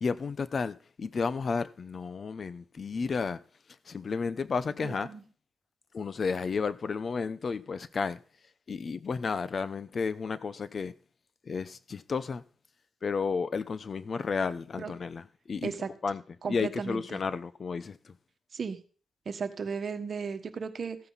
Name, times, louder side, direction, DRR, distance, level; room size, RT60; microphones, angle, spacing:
voice 1, 0.0-3.4 3.9-5.1 5.9-8.2 8.7-10.9 11.5-12.4 13.0-15.8 16.0-16.2 16.5-18.2, left 5 dB, 50° left, 0.7 m, -32 dB
voice 2, 4.8-5.2 14.8-14.9 15.6-15.9 16.4-17.2 18.5-18.8 19.2-21.0, right 5 dB, 55° right, 1.4 m, -35 dB
15.0 x 9.1 x 4.1 m
cardioid pair, 85°, 0 cm